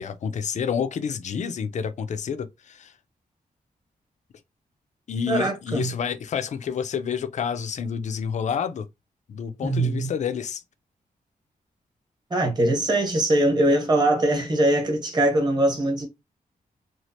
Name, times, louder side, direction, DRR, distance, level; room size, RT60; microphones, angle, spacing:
voice 1, 0.0-2.9 5.1-8.9 9.3-10.6, left 7 dB, 50° left, 0.4 m, -29 dB
voice 2, 5.3-5.9 9.6-10.1 12.3-16.1, right 1 dB, 30° right, 1.0 m, -22 dB
3.1 x 2.4 x 2.7 m
wide cardioid pair, 170°, 15 cm